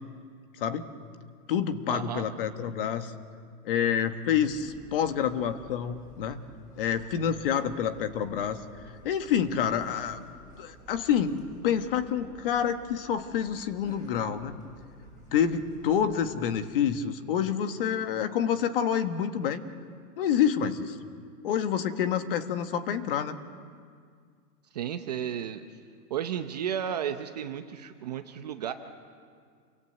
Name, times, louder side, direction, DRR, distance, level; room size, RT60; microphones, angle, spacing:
voice 1, 0.6-0.9 1.5-3.1 3.6-6.4 6.7-8.6 9.0-10.2 10.6-14.6 15.3-19.6 20.2-21.0 21.4-23.4, left 8 dB, 35° left, 9 dB, 1.4 m, -28 dB
voice 2, 1.9-2.3 24.7-25.6 26.1-28.7, right 9 dB, 25° right, 7 dB, 0.7 m, -33 dB
sound 1, 4.5-16.7, right 2 dB, 10° left, 6.7 m, -52 dB
28.5 x 24.0 x 8.0 m, 2.1 s
hypercardioid pair, 165°, 48 cm